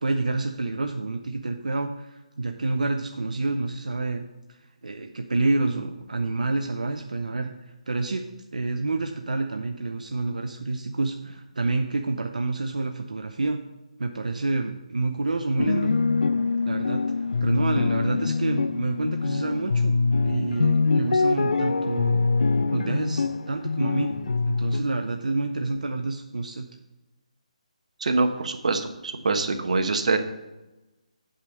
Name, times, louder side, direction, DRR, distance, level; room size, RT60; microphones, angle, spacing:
voice 1, 0.0-4.2 4.8-8.2 8.5-13.6 14.0-15.9 16.6-17.0 17.4-22.2 22.7-24.1 24.4-26.7, right 3 dB, 85° right, 5 dB, 0.7 m, -28 dB
sound 1, 15.6-24.8, left 4 dB, 75° left, 0.5 m, -24 dB
voice 2, 28.0-30.2, right 3 dB, 65° right, 6 dB, 1.1 m, -24 dB
8.1 x 5.1 x 6.4 m, 1.0 s
hypercardioid pair, 160°, 4 cm